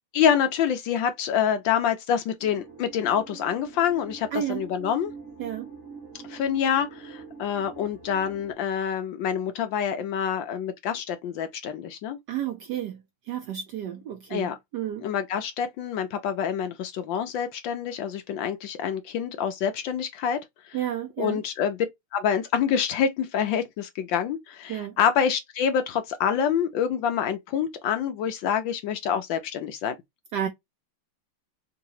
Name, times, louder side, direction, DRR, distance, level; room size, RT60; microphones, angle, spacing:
voice 1, 0.1-5.1 6.3-12.2 14.3-14.5 15.0-20.8 21.2-21.8 22.1-30.0, left 8 dB, 75° left, 1.2 m, -26 dB
sound 1, 2.4-8.5, right 5 dB, 40° right, 1.6 m, -44 dB
voice 2, 4.3-4.6 5.4-5.7 12.3-13.0 13.3-15.0 20.7-21.4 24.7-24.9 30.3-30.5, right 10 dB, 75° right, 0.9 m, -31 dB
3.8 x 2.9 x 2.7 m
omnidirectional pair, 2.4 m